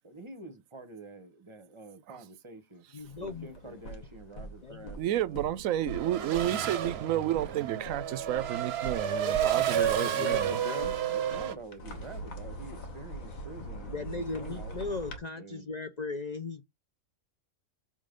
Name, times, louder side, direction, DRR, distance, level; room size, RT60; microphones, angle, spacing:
voice 1, 0.0-2.8 3.2-5.6 6.2-6.8 11.1-14.8 15.3-15.7, right 3 dB, 25° right, 0.9 m, -47 dB
voice 2, 2.9-3.8 4.6-4.9 9.3-11.0 13.8-16.6, left 3 dB, 40° left, 0.7 m, -38 dB
sound 1, 3.0-15.2, right 1 dB, 90° left, 2.1 m, -43 dB
voice 3, 5.0-10.6, right 12 dB, 80° right, 1.0 m, -31 dB
Race car auto racing / Accelerating revving vroom, 5.9-11.6, right 9 dB, 55° right, 0.9 m, -31 dB
7.0 x 3.7 x 5.1 m
omnidirectional pair, 1.4 m